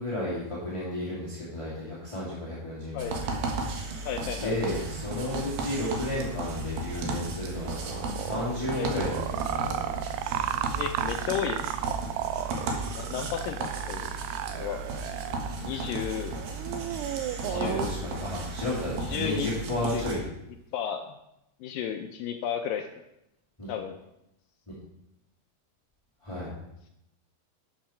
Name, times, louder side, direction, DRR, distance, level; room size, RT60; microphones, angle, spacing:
voice 1, 0.0-3.3 4.4-9.9 17.5-20.2 23.6-23.7 24.7-24.8 26.2-26.5, left 1 dB, 10° left, -8 dB, 1.8 m, -33 dB
sound 1, 3.0-20.2, right 3 dB, 65° right, 3.2 m, -35 dB
voice 2, 4.1-4.6 8.7-8.9 10.8-12.0 12.9-14.1 14.5-14.8 15.6-16.3 17.4-18.2 19.0-19.5 19.8-20.0 20.7-21.1 21.6-22.9 23.7-24.0, left 9 dB, 85° left, 4 dB, 2.0 m, -33 dB
sound 2, 7.6-15.5 15.7-16.1 16.3-17.9, right 12 dB, 85° right, 2.7 m, -34 dB
12.5 x 8.8 x 4.4 m, 0.83 s
omnidirectional pair, 4.7 m